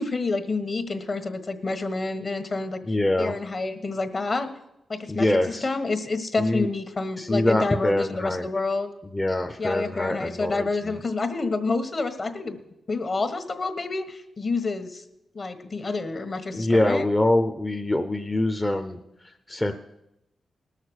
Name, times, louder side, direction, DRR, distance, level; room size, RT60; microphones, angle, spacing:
voice 1, 0.0-2.8 3.2-4.5 4.9-8.9 9.6-12.6 12.9-15.0 15.3-17.1, left 3 dB, 45° left, 8 dB, 1.4 m, -28 dB
voice 2, 2.9-3.3 5.1-5.7 6.4-6.7 7.2-8.5 9.0-11.0 16.5-19.7, left 1 dB, 15° left, 5 dB, 0.7 m, -24 dB
19.0 x 6.6 x 6.4 m, 0.87 s
cardioid pair, 85°, 0 cm